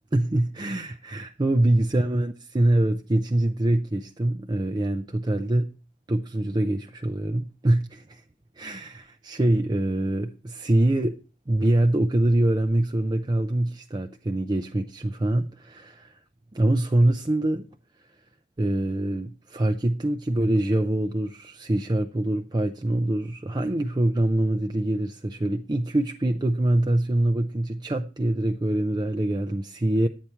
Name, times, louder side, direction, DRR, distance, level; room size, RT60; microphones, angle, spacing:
voice 1, 0.1-5.7 6.1-8.2 8.6-11.2 11.5-16.2 16.5-17.7 18.0-18.2 18.6-30.1, right 1 dB, 20° right, 0.5 m, -24 dB
11.0 x 8.5 x 4.4 m
head